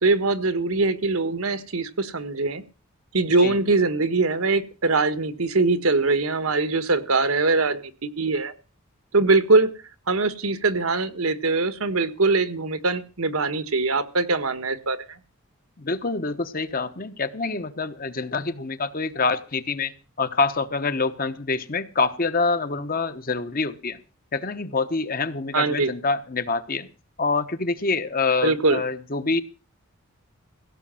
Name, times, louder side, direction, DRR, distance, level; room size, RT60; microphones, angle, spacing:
voice 1, 0.0-2.6 3.1-8.5 9.1-9.7 10.1-15.0 25.5-25.9 28.4-28.8, right 3 dB, 80° right, 12 dB, 1.5 m, -22 dB
voice 2, 15.8-19.9 20.2-24.0 24.3-26.9 27.2-29.4, left 4 dB, 40° left, 11 dB, 1.0 m, -26 dB
16.5 x 6.5 x 7.6 m, 0.35 s
head